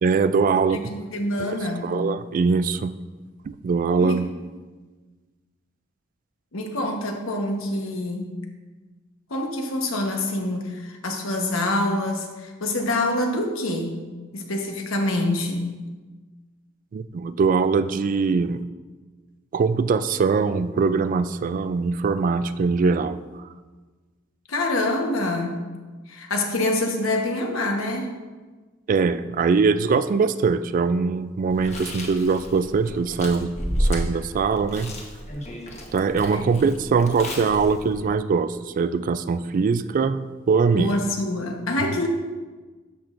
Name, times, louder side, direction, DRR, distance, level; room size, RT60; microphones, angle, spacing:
voice 1, 0.0-0.8 1.4-1.5 1.8-2.9 3.5-4.3 16.9-18.6 19.5-23.2 28.9-35.0 35.9-41.0, right 5 dB, 40° right, 13 dB, 0.3 m, -22 dB
voice 2, 0.9-2.0 4.0-4.3 6.5-8.3 9.3-14.0 14.3-15.7 24.5-25.6 26.1-28.1 36.3-36.5 40.8-42.1, left 1 dB, 85° left, 3 dB, 1.1 m, -26 dB
Chewing mastication, 31.5-38.0, equal, 35° left, 1.1 m, -31 dB
12.5 x 6.1 x 2.5 m, 1.3 s
head